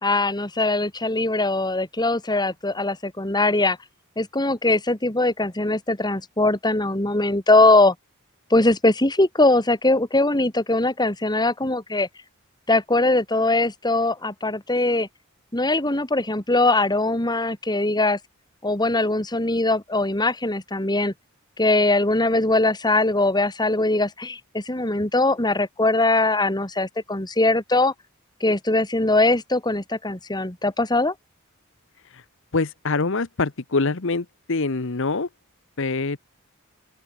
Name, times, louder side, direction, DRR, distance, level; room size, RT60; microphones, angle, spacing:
voice 1, 0.0-3.8 4.2-7.9 8.5-12.1 12.7-15.1 15.5-18.2 18.6-21.1 21.6-27.9 28.4-31.1, left 2 dB, 20° left, 2.7 m, -21 dB
voice 2, 32.5-35.3 35.8-36.2, left 3 dB, 65° left, 1.1 m, -25 dB
open air
head